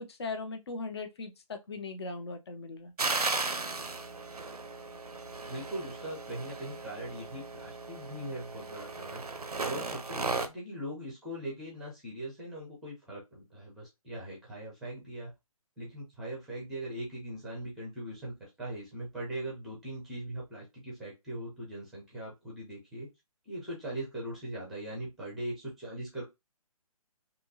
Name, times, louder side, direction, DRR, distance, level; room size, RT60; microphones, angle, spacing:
voice 1, 0.0-2.9, left 3 dB, 45° left, 0.5 m, -39 dB
sound 1, 3.0-10.5, right 3 dB, 85° right, 0.4 m, -36 dB
voice 2, 5.5-9.2 9.6-15.3 15.8-23.1 23.5-26.2, right 1 dB, ahead, 0.5 m, -40 dB
2.7 x 2.2 x 2.7 m
figure-of-eight pair, 140°, 19 cm